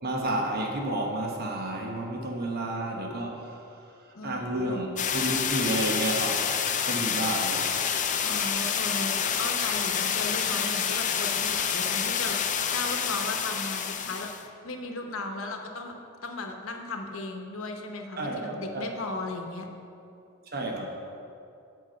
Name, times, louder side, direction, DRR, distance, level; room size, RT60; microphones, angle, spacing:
voice 1, 0.0-3.8 4.2-7.6 18.2-18.9 20.5-20.9, right 1 dB, 50° right, 0 dB, 1.1 m, -31 dB
voice 2, 4.1-4.8 8.2-15.9 16.2-19.7, left 2 dB, 85° left, 4 dB, 1.0 m, -36 dB
sound 1, 5.0-14.4, left 7 dB, 40° left, 0.5 m, -28 dB
8.0 x 5.9 x 7.6 m, 2.6 s
head